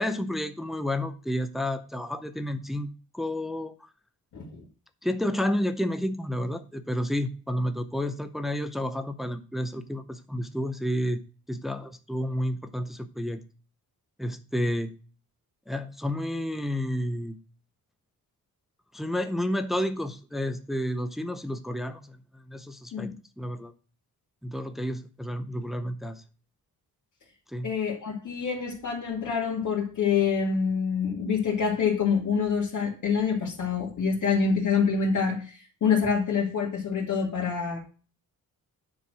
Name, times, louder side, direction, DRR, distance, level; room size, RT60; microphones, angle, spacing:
voice 1, 0.0-2.9 3.1-3.7 5.0-11.2 11.5-13.4 14.2-15.0 15.7-17.4 18.9-23.7 24.4-26.2 27.5-27.7, left 1 dB, ahead, 7 dB, 0.7 m, -30 dB
voice 2, 4.3-4.6 22.9-23.1 27.6-37.8, left 6 dB, 55° left, -4 dB, 2.2 m, -26 dB
10.0 x 4.6 x 6.0 m, 0.37 s
wide cardioid pair, 155°, 36 cm